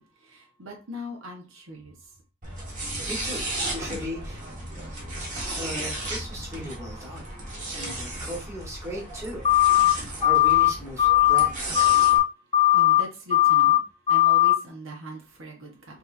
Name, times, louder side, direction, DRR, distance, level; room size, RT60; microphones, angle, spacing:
voice 1, 0.0-1.9 12.7-13.8 14.1-16.0, left 1 dB, 70° right, 1.3 m, -40 dB
sound 1, 2.4-12.2, right 1 dB, 40° right, 1.7 m, -34 dB
voice 2, 3.1-3.4 3.7-4.4 5.5-7.3 7.7-9.4 9.8-11.8, equal, 15° right, 1.6 m, -37 dB
sound 2, 9.4-9.9 10.2-10.7 11.0-11.5 11.7-12.2 12.5-13.0 13.3-13.8 14.1-14.6, left 14 dB, 30° left, 0.3 m, -18 dB
6.3 x 3.0 x 2.7 m
head